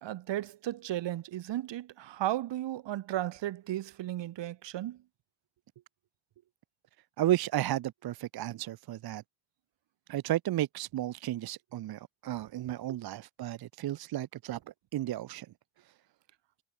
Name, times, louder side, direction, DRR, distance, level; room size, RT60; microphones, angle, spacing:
voice 1, 0.0-5.0 12.9-13.0, right 13 dB, 75° right, 1.1 m, -35 dB
voice 2, 7.2-9.2 10.1-14.6 14.9-15.5, right 13 dB, 55° right, 0.6 m, -33 dB
cardioid pair, 110°, 44 cm